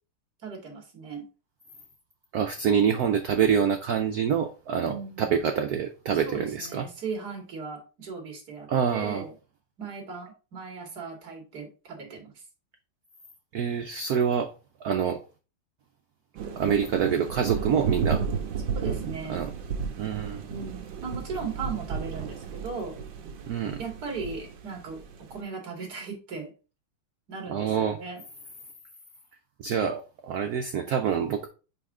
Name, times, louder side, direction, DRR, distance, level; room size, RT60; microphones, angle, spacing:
voice 1, 0.4-1.3 4.9-5.6 6.2-9.3 9.8-12.4 18.7-19.4 20.5-22.9 23.8-26.5 27.3-28.2, right 4 dB, 50° right, 2.5 m, -37 dB
voice 2, 2.3-6.8 8.7-9.2 13.5-14.5 14.8-15.2 16.6-18.2 19.3-19.5 20.0-20.5 23.5-23.8 27.5-28.0 29.6-31.5, right 7 dB, 85° right, 0.8 m, -26 dB
sound 1, 16.4-25.4, right 6 dB, 65° right, 1.6 m, -33 dB
5.5 x 5.0 x 3.6 m
omnidirectional pair, 2.3 m